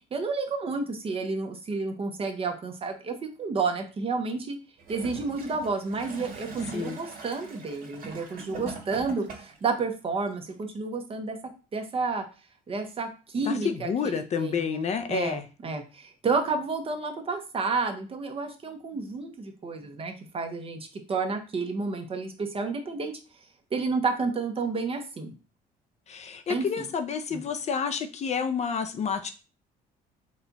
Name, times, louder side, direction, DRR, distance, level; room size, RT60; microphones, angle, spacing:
voice 1, 0.1-4.6 4.9-11.4 11.7-12.2 12.7-14.8 15.1-23.1 23.7-25.3 26.5-26.9 27.3-27.4, right 4 dB, 35° right, 5 dB, 0.9 m, -31 dB
Gurgling / Toilet flush, 4.8-9.7 10.5-10.6, right 3 dB, 60° right, 1.5 m, -41 dB
voice 2, 13.5-15.4 26.1-29.3, left 6 dB, 40° left, 8 dB, 0.5 m, -29 dB
4.2 x 2.3 x 4.0 m, 0.33 s
cardioid pair, 110°, 17 cm